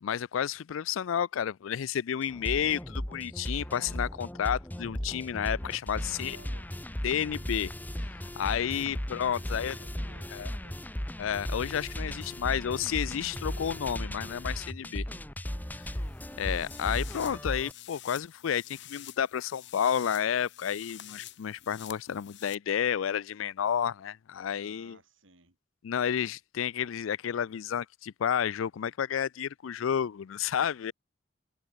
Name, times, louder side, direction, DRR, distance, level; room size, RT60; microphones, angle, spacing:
voice 1, 0.0-6.4 7.0-7.7 8.0-9.8 10.3-10.5 11.2-15.0 15.7-15.8 16.4-25.0 25.8-30.9, left 8 dB, 80° left, 0.4 m, -31 dB
sound 1, 2.2-17.7, equal, 10° left, 1.1 m, -36 dB
voice 2, 5.9-6.7 8.6-9.0 9.3-10.8 14.8-15.2 24.5-25.6, right 2 dB, 70° right, 5.6 m, -56 dB
sound 2, 15.8-22.6, left 13 dB, 65° left, 1.7 m, -49 dB
head